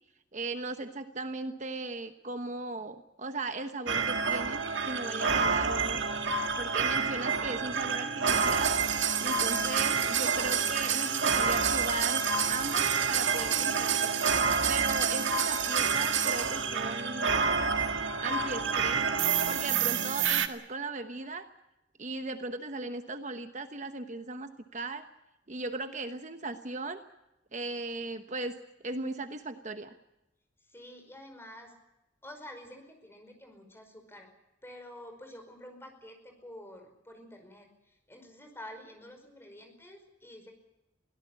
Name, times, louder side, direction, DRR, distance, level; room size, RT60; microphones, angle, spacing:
voice 1, 0.3-6.1 6.6-8.7 9.2-12.2 12.5-14.2 14.7-17.5 18.2-19.0 19.5-21.5 22.0-25.0 25.5-27.0 27.5-28.6 28.8-29.9, right 3 dB, 40° right, 8 dB, 1.1 m, -37 dB
sound 1, 3.9-20.5, right 6 dB, 90° right, 1.7 m, -28 dB
voice 2, 30.6-31.7 32.2-34.3 34.6-40.5, left 1 dB, 15° left, 5 dB, 5.2 m, -49 dB
23.5 x 17.0 x 8.4 m, 0.92 s
head